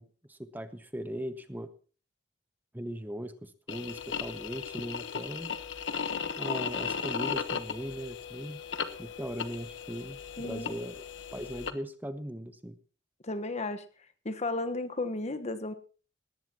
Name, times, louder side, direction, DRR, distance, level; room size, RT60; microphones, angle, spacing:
voice 1, 0.0-1.7 2.7-5.5 6.4-8.6 9.0-11.0 11.3-12.8, equal, 10° right, 10 dB, 0.8 m, -39 dB
sound 1, 3.7-11.7, left 6 dB, 80° left, 1.2 m, -36 dB
voice 2, 10.4-10.8 13.2-13.8 14.2-15.7, left 2 dB, 40° left, 10 dB, 1.2 m, -34 dB
19.0 x 15.0 x 2.9 m, 0.38 s
head